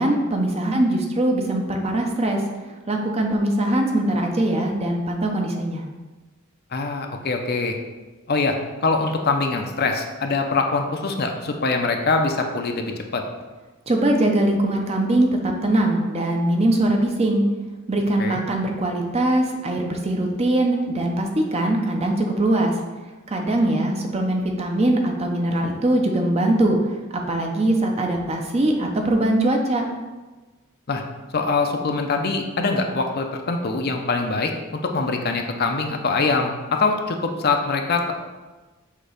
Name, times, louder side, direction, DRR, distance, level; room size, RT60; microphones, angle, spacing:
voice 1, 0.0-2.4 2.9-5.8 13.9-17.4 17.9-22.7 23.3-26.8 27.3-29.8, right 1 dB, 30° right, 2 dB, 0.7 m, -21 dB
voice 2, 6.7-7.8 8.3-8.6 8.8-13.2 18.2-18.4 30.9-31.0 31.3-38.1, left 3 dB, 50° left, 3 dB, 0.6 m, -23 dB
6.5 x 3.0 x 5.0 m, 1.2 s
head